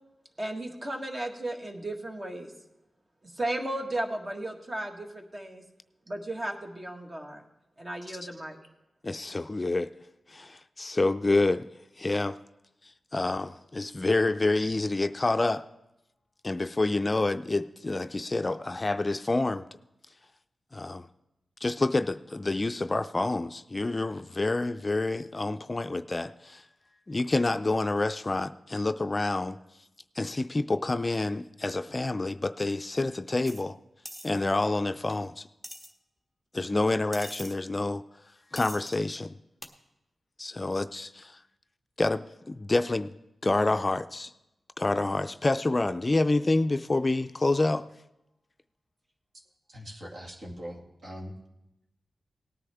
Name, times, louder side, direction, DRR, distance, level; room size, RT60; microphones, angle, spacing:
voice 1, 0.4-2.5 3.2-5.6 6.1-7.4 7.8-8.6, right 1 dB, 35° right, 3 dB, 1.7 m, -35 dB
voice 2, 9.0-9.9 10.3-11.6 12.0-12.4 13.1-15.6 16.4-19.6 20.7-21.0 21.6-26.6 27.1-29.6 30.2-33.8 34.2-35.4 36.5-38.0 38.5-39.3 40.4-41.3 42.0-43.2 43.4-44.3 44.8-47.9, left 2 dB, 30° left, 10 dB, 0.4 m, -28 dB
sound 1, 33.5-33.6 34.1-34.3 35.1-35.2 35.6-35.9 37.1-37.5 38.6-39.0 39.6-39.7, equal, 15° right, 1.3 m, -42 dB
voice 3, 49.7-51.4, equal, 55° right, -2 dB, 2.2 m, -41 dB
18.5 x 9.7 x 3.5 m, 0.91 s
cardioid pair, 65°, 0 cm